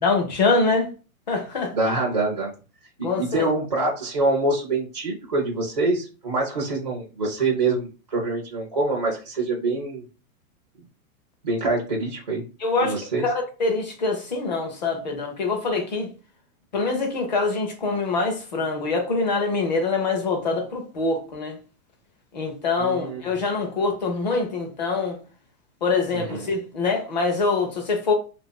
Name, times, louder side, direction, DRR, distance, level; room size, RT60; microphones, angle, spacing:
voice 1, 0.0-0.9 1.3-1.7 3.0-3.4 12.6-13.0 13.2-16.1 16.7-21.6 22.3-25.2 25.8-28.1, left 3 dB, 30° left, 0.5 m, -24 dB
voice 2, 1.7-2.5 3.0-10.0 11.4-12.4 12.8-13.3 22.8-23.2 26.1-26.5, right 2 dB, 30° right, 0.4 m, -25 dB
2.8 x 2.5 x 3.7 m
hypercardioid pair, 180°, 44 cm